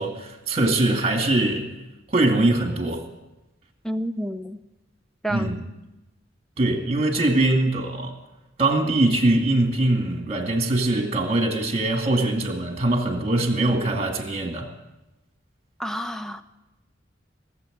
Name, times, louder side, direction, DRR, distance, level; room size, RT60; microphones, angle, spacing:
voice 1, 0.0-1.7 2.1-3.0 5.3-5.6 6.6-8.1 8.6-14.7, right 2 dB, 35° right, 3 dB, 2.2 m, -22 dB
voice 2, 3.8-4.6 5.2-5.5 15.8-16.4, equal, 5° left, 9 dB, 0.6 m, -29 dB
18.0 x 8.0 x 7.9 m, 1.0 s
head